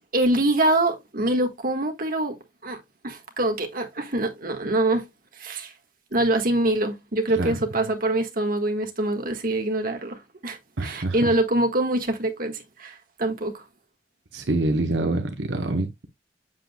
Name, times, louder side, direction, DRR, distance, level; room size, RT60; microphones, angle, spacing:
voice 1, 0.1-2.4 2.6-2.8 3.0-5.1 5.3-5.7 6.1-13.6, right 1 dB, 55° right, 1.5 m, -24 dB
voice 2, 10.8-11.3 14.3-16.1, right 2 dB, 80° right, 1.0 m, -26 dB
7.7 x 7.6 x 2.2 m
head